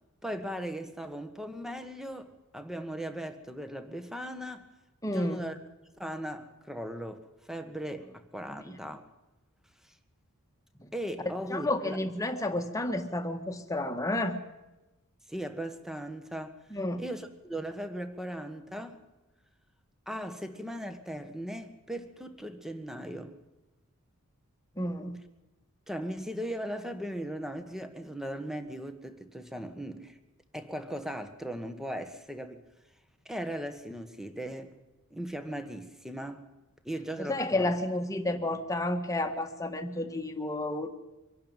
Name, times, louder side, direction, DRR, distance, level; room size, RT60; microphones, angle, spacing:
voice 1, 0.2-4.7 5.0-5.6 6.0-7.2 7.4-9.0 10.9-12.0 15.3-16.6 17.0-19.0 20.1-23.4 25.9-30.2 30.5-32.6 33.2-34.7 35.1-36.4 36.8-37.7, equal, ahead, 1.5 m, -38 dB
voice 2, 5.0-5.4 8.5-8.6 10.8-10.9 11.5-14.4 16.7-17.0 24.8-25.2 37.3-40.9, left 1 dB, 15° left, 1.7 m, -31 dB
24.5 x 11.5 x 9.1 m
head